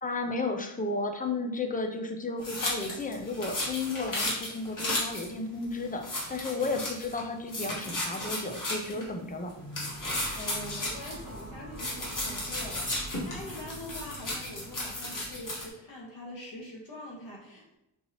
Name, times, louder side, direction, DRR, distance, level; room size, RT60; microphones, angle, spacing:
voice 1, 0.0-9.5, left 3 dB, 20° left, 4 dB, 0.3 m, -33 dB
sound 1, 2.4-5.3 5.6-5.7 6.0-7.2 7.5-9.0 9.7-11.4 11.8-15.6, left 1 dB, 40° left, 1.5 m, -34 dB
sound 2, 9.6-15.5, right 1 dB, 5° left, 1.1 m, -45 dB
voice 2, 10.0-17.8, left 1 dB, 65° left, -3 dB, 1.6 m, -44 dB
5.4 x 2.8 x 2.9 m, 0.86 s
wide cardioid pair, 130°, 49 cm